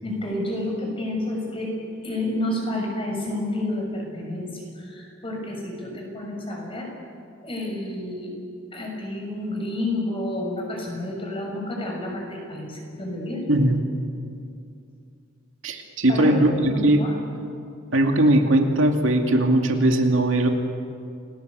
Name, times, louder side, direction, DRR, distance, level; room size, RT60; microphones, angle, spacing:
voice 1, 0.0-1.7 2.0-6.9 7.4-8.3 8.7-13.4 16.1-17.1, left 1 dB, 25° left, 0 dB, 6.2 m, -30 dB
voice 2, 13.5-13.8 15.6-17.0 17.9-20.5, right 1 dB, 75° right, 3 dB, 2.5 m, -19 dB
28.5 x 19.5 x 8.2 m, 2.5 s
head